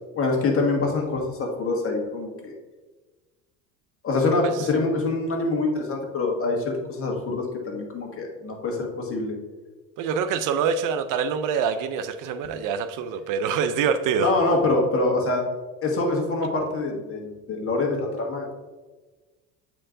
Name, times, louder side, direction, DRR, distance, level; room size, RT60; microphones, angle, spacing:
voice 1, 0.1-2.5 4.0-9.4 14.2-15.4 15.8-18.5, left 3 dB, 35° left, 0 dB, 1.7 m, -25 dB
voice 2, 10.0-14.3, right 6 dB, 55° right, 11 dB, 0.5 m, -25 dB
8.4 x 4.6 x 2.6 m, 1.3 s
supercardioid pair, 90°, 37 cm